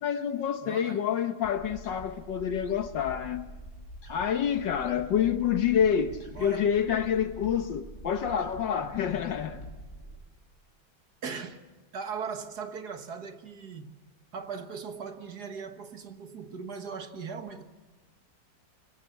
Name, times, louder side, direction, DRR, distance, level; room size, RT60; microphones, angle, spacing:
voice 1, 0.0-3.5 4.1-9.6, left 8 dB, 65° left, 1.6 m, -28 dB
voice 2, 0.6-1.1 6.4-6.8 11.2-11.6 11.9-14.0 14.3-17.6, right 6 dB, 55° right, 1.9 m, -39 dB
sound 1, 1.4-10.2, equal, 40° left, 4.5 m, -46 dB
25.0 x 22.0 x 8.5 m
omnidirectional pair, 2.2 m